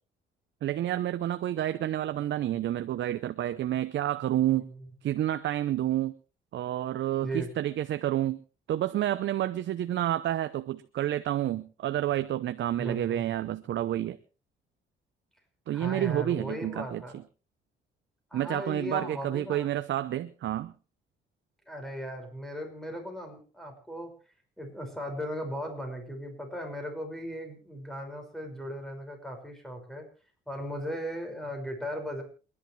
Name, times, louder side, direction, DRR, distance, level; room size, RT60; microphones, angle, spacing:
voice 1, 0.6-4.7 5.0-6.2 6.5-8.4 8.7-14.2 15.7-17.0 18.3-20.7, right 12 dB, 70° right, 11 dB, 0.8 m, -29 dB
voice 2, 4.5-4.8 7.2-7.5 12.8-13.2 15.7-17.2 18.3-19.7 21.7-24.1 24.6-30.1 30.5-32.2, equal, ahead, 3 dB, 5.6 m, -37 dB
28.0 x 11.0 x 3.3 m, 0.35 s
cardioid pair, 90°, 20 cm